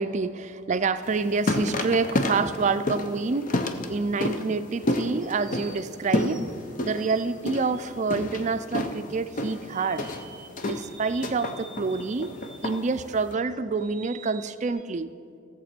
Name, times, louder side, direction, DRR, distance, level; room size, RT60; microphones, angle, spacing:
voice 1, 0.0-3.5 3.9-6.4 6.8-10.0 10.6-12.3 12.6-15.1, right 4 dB, 35° right, 12 dB, 0.4 m, -27 dB
sound 1, 1.0-13.3, left 1 dB, 45° left, 0.7 m, -30 dB
sound 2, 3.4-3.8 5.2-7.7 9.7-13.0 13.3-14.7, right 5 dB, 20° right, 1.2 m, -49 dB
16.0 x 7.5 x 4.4 m, 2.3 s
head